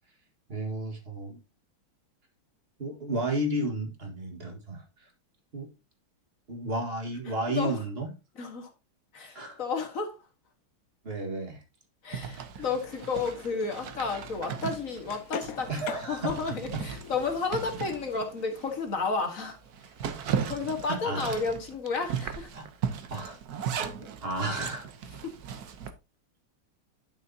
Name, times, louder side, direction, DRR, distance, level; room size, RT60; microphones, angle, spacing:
voice 1, 0.5-1.4 2.8-4.8 5.5-5.7 6.5-8.1 9.3-9.6 11.0-11.6 12.5-12.6 15.7-16.4 16.7-16.8 20.1-20.4 20.9-21.4 22.5-22.7 23.1-23.7 24.0-24.8, right 1 dB, 30° right, 1.8 m, -33 dB
voice 2, 7.3-7.8 8.4-8.7 9.1-10.2 12.0-19.6 20.5-22.5 25.2-25.4, left 4 dB, 40° left, 1.7 m, -32 dB
Zipper (clothing), 12.1-18.7 19.1-19.2 19.6-25.9, right 7 dB, 60° right, 1.1 m, -37 dB
sound 1, 12.8-19.1, left 8 dB, 65° left, 0.9 m, -45 dB
11.0 x 6.2 x 2.8 m
omnidirectional pair, 2.3 m